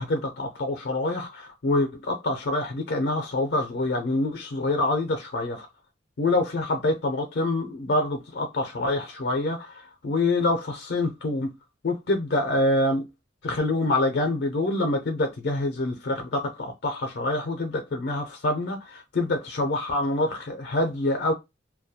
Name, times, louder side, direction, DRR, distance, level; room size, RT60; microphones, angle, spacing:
voice 1, 0.0-5.7 6.2-11.5 11.8-13.1 13.4-21.3, left 2 dB, 65° left, 0.4 m, -26 dB
2.3 x 2.1 x 2.7 m
head